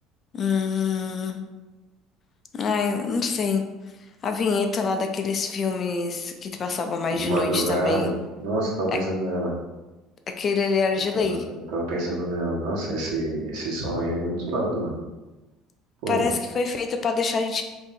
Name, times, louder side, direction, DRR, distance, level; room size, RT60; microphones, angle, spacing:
voice 1, 0.3-1.4 2.5-3.6 4.2-8.1 8.9-9.0 10.4-11.5 16.1-17.6, left 5 dB, 30° left, 5 dB, 0.4 m, -25 dB
voice 2, 7.1-8.1 8.4-9.5 11.1-15.0 16.0-16.2, right 1 dB, 75° right, -3 dB, 1.1 m, -27 dB
3.6 x 2.7 x 4.1 m, 1.1 s
cardioid pair, 155°, 0 cm